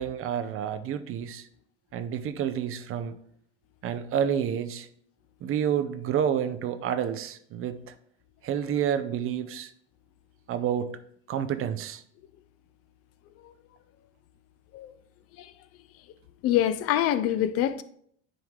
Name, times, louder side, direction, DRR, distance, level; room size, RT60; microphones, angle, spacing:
voice 1, 0.0-1.5 1.9-3.1 3.8-4.9 5.4-7.9 8.4-9.7 10.5-11.0 11.3-12.0, right 9 dB, 40° right, 0.6 m, -29 dB
voice 2, 16.4-17.8, left 11 dB, 45° left, 0.4 m, -25 dB
9.8 x 3.4 x 3.2 m
hypercardioid pair, 70°, 35 cm